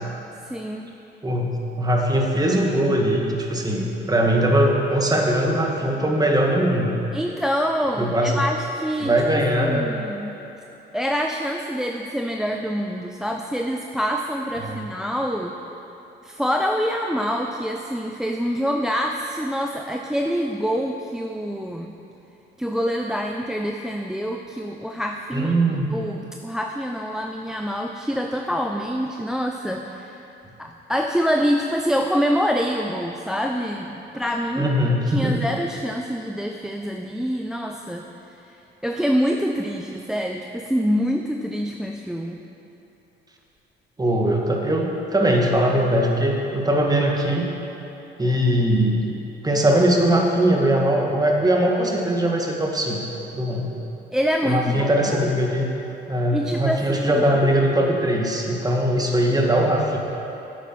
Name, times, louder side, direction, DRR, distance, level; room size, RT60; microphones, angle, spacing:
voice 1, 0.4-1.0 7.1-10.3 10.9-15.6 16.2-22.0 22.6-25.5 25.9-30.2 30.6-34.7 35.1-38.1 38.4-38.6 38.8-42.4 54.1-55.3 56.3-57.2, equal, 5° right, 3 dB, 0.5 m, -26 dB
voice 2, 1.8-7.0 8.0-8.4 9.0-9.9 14.6-14.8 25.3-25.9 34.6-35.4 44.0-47.5 48.2-49.2 49.4-53.0 53.3-53.7 54.4-55.7 56.1-60.0, right 1 dB, 20° right, 0 dB, 1.7 m, -21 dB
10.0 x 8.4 x 6.0 m, 3.0 s
cardioid pair, 90°, 20 cm